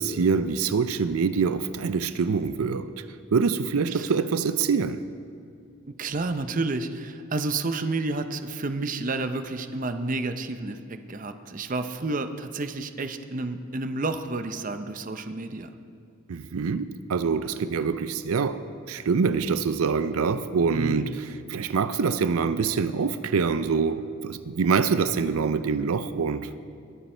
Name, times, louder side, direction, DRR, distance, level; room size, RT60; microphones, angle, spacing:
voice 1, 0.0-2.9 3.3-5.0 16.3-18.6 18.9-26.5, right 5 dB, 90° right, 0.5 m, -25 dB
voice 2, 5.9-10.8 11.1-15.7 20.7-21.1, right 3 dB, 40° right, 0.6 m, -30 dB
22.0 x 9.3 x 4.4 m
head